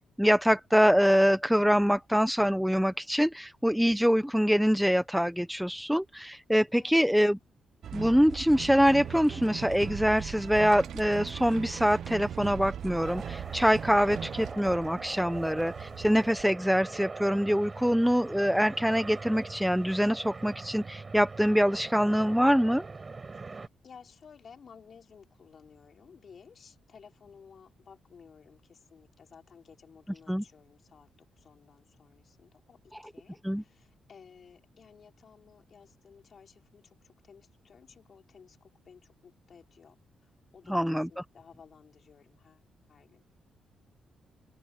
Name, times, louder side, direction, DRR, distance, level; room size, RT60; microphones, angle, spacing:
voice 1, 0.0-7.4 7.9-22.8 30.3-30.4 32.9-33.0 33.4-33.6 40.7-41.1, equal, ahead, 0.7 m, -24 dB
voice 2, 6.8-7.1 23.4-31.1 31.4-40.0 40.5-42.6 42.9-43.3, left 6 dB, 40° left, 4.3 m, -55 dB
sound 1, 7.8-14.5, right 9 dB, 55° right, 0.8 m, -39 dB
sound 2, 10.4-16.4, right 10 dB, 75° right, 2.3 m, -47 dB
sound 3, 13.0-23.7, right 4 dB, 25° right, 5.2 m, -42 dB
open air
cardioid pair, 165°, 0 cm